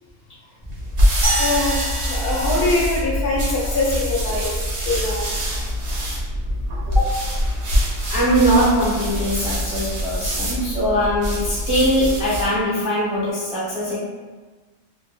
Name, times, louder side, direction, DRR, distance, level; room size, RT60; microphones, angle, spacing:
sound 1, 0.7-12.6, equal, 50° right, 0.7 m, -24 dB
sound 2, 1.2-3.7, right 1 dB, 85° right, 1.5 m, -27 dB
voice 1, 1.4-5.3, left 2 dB, 80° left, -4 dB, 1.3 m, -23 dB
voice 2, 6.9-7.2 8.1-14.0, equal, 5° right, -10 dB, 0.5 m, -21 dB
3.7 x 2.1 x 2.4 m, 1.3 s
omnidirectional pair, 1.6 m